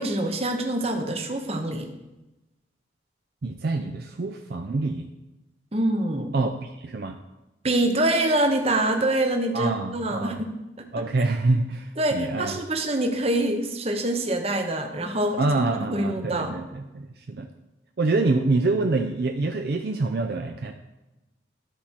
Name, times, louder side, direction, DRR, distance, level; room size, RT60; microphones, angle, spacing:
voice 1, 0.0-1.9 5.7-6.3 7.6-10.9 12.0-16.6, right 1 dB, 30° right, 5 dB, 0.8 m, -25 dB
voice 2, 3.4-5.1 6.3-7.2 9.5-10.4 10.9-12.6 15.4-17.5 18.0-20.7, right 3 dB, 55° right, 4 dB, 0.5 m, -26 dB
13.0 x 4.3 x 4.4 m, 1.0 s
head